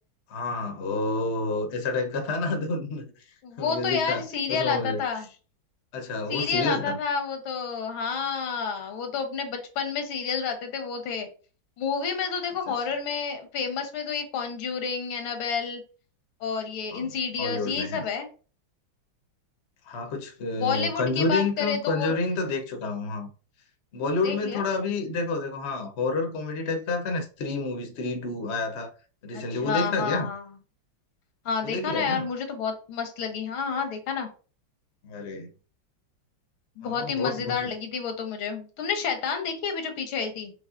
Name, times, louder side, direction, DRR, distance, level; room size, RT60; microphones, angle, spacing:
voice 1, 0.3-3.3 3.6-5.0 5.9-7.0 16.9-17.1 17.4-18.0 19.9-23.3 23.9-28.9 29.2-30.3 31.6-32.3 35.0-35.5 36.8-37.7, left 3 dB, 55° left, 0.7 m, -29 dB
voice 2, 3.4-5.3 6.3-11.3 11.8-15.8 16.4-18.3 20.6-22.2 24.2-24.6 29.3-30.4 31.5-34.3 36.8-40.5, left 6 dB, 80° left, 1.7 m, -30 dB
5.4 x 3.9 x 2.4 m
omnidirectional pair, 2.3 m